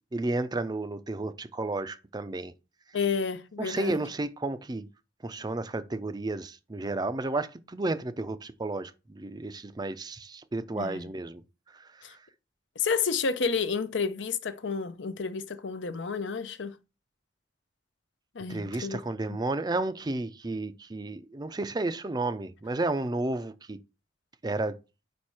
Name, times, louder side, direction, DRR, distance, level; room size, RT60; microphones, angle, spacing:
voice 1, 0.1-2.5 3.6-4.9 5.2-11.4 11.7-12.2 18.5-23.8 24.4-24.8, right 2 dB, 20° right, 0.4 m, -32 dB
voice 2, 2.9-4.0 10.7-11.1 12.0-12.1 12.8-16.7 18.3-19.0 19.3-19.4, left 5 dB, 75° left, 0.6 m, -30 dB
5.3 x 4.3 x 4.8 m
head